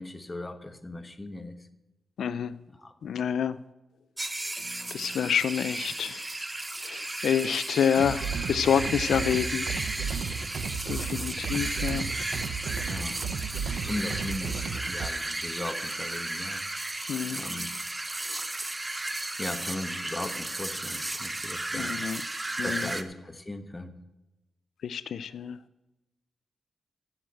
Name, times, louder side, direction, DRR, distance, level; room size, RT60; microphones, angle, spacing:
voice 1, 0.0-1.5 2.7-2.9 5.0-5.2 12.9-13.2 13.9-16.8 17.2-17.7 19.4-22.0 22.6-23.9, left 2 dB, 20° left, 9 dB, 1.1 m, -38 dB
voice 2, 2.2-2.6 3.0-3.6 4.9-6.2 6.8-9.8 10.9-12.1 17.1-17.4 21.7-22.2 22.6-22.9 24.8-25.6, left 8 dB, 80° left, 16 dB, 0.3 m, -28 dB
sound 1, 4.2-23.0, right 2 dB, 20° right, 0.8 m, -34 dB
sound 2, 8.0-15.1, right 6 dB, 80° right, 0.6 m, -34 dB
7.9 x 7.7 x 8.7 m, 1.0 s
cardioid pair, 80°, 0 cm